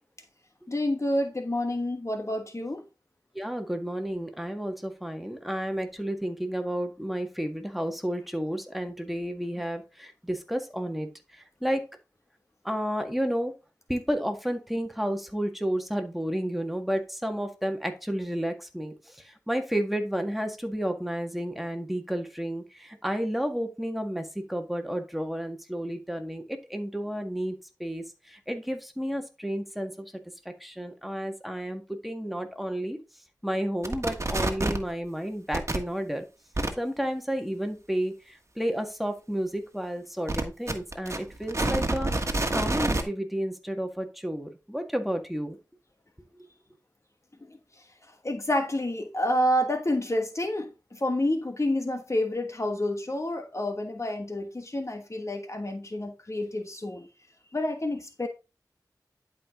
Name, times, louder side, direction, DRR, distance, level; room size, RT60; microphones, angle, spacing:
voice 1, 0.7-2.8 47.5-57.1 57.5-58.3, left 1 dB, 45° left, 1.3 m, -29 dB
voice 2, 3.4-11.8 12.6-13.5 13.9-30.1 30.5-33.0 33.4-36.2 36.8-42.1 42.5-45.6, equal, ahead, 1.8 m, -31 dB
sound 1, 33.8-34.9 35.5-35.8 36.6-36.7 40.3-43.0, right 2 dB, 45° right, 1.5 m, -27 dB
11.0 x 4.9 x 3.8 m
wide cardioid pair, 45°, 7 cm